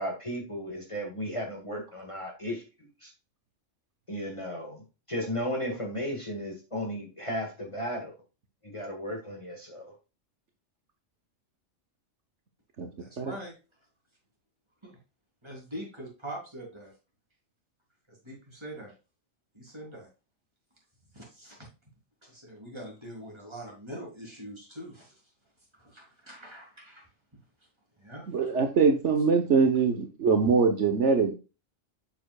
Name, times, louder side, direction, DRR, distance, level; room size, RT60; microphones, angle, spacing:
voice 1, 0.0-2.6 3.0-3.1 4.1-4.8 5.1-8.1 8.7-9.9, equal, 25° left, 1 dB, 1.9 m, -34 dB
voice 2, 13.0-13.5 14.8-15.0 15.4-16.9 18.1-18.9 19.5-20.1 21.1-21.7 22.2-25.2 25.7-27.1 28.0-28.5, right 1 dB, 20° right, -2 dB, 3.6 m, -43 dB
voice 3, 28.3-31.4, right 5 dB, 65° right, 5 dB, 1.4 m, -23 dB
7.7 x 6.7 x 2.4 m, 0.30 s
omnidirectional pair, 1.3 m